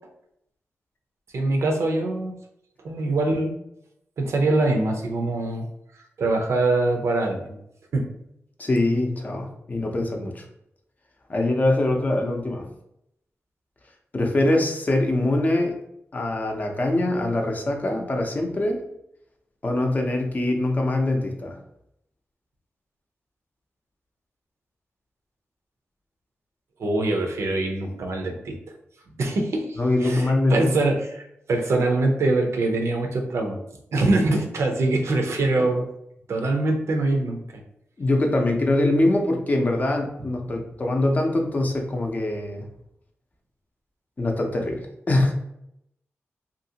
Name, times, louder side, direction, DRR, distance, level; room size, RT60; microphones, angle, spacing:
voice 1, 1.3-2.4 2.8-3.5 4.2-5.7 6.2-7.6 7.9-8.1 26.8-28.6 29.2-33.6 33.9-35.9 36.3-37.4, right 2 dB, 75° right, 3 dB, 0.5 m, -23 dB
voice 2, 8.6-10.4 11.3-12.7 14.1-15.8 16.1-18.8 19.6-21.6 29.8-30.7 38.0-42.6 44.2-45.3, left 2 dB, 35° left, 2 dB, 0.5 m, -23 dB
2.8 x 2.5 x 2.7 m, 0.78 s
wide cardioid pair, 100°, 5 cm